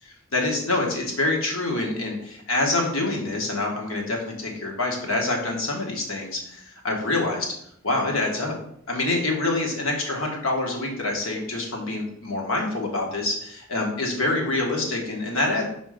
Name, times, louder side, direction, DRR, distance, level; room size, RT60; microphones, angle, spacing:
voice 1, 0.3-7.5 7.8-8.5 8.9-15.7, left 2 dB, 90° left, 0 dB, 1.5 m, -26 dB
4.9 x 3.8 x 5.1 m, 0.70 s
head